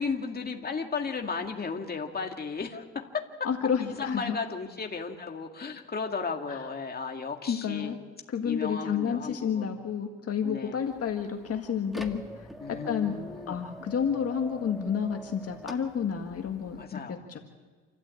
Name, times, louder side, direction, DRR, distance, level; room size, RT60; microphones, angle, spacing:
voice 1, 0.0-3.2 4.0-7.9 8.4-9.7 10.4-10.8 12.6-13.7 16.7-17.4, left 5 dB, 30° left, 3 dB, 2.3 m, -34 dB
voice 2, 3.4-4.4 6.5-6.6 7.5-8.0 8.3-12.5 12.8-13.1 13.5-17.4, left 7 dB, 50° left, 3 dB, 1.9 m, -30 dB
sound 1, 10.8-16.8, equal, ahead, 1.9 m, -45 dB
28.5 x 13.0 x 8.5 m, 1.4 s
cardioid pair, 90°, 30 cm